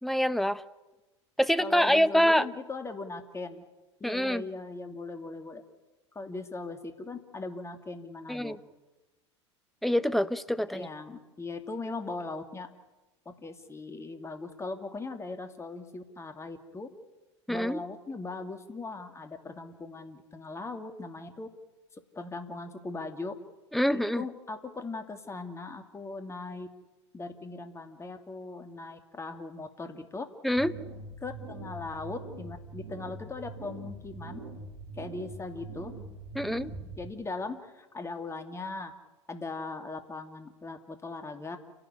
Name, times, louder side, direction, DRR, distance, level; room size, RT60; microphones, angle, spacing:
voice 1, 0.0-0.6 1.4-2.5 4.0-4.4 8.3-8.6 9.8-10.9 17.5-17.8 23.7-24.2 30.4-30.7 36.3-36.7, equal, ahead, 14 dB, 0.9 m, -25 dB
voice 2, 1.6-3.6 4.0-5.6 6.1-8.6 10.7-12.7 13.3-16.9 17.5-21.5 22.1-23.3 23.9-26.7 27.1-30.3 31.2-34.4 35.0-35.9 37.0-38.9 39.3-41.6, left 3 dB, 20° left, 6 dB, 2.7 m, -39 dB
sound 1, 30.5-37.1, right 3 dB, 65° right, 7.4 m, -43 dB
29.5 x 12.0 x 10.0 m, 1.1 s
figure-of-eight pair, 80°, 15 cm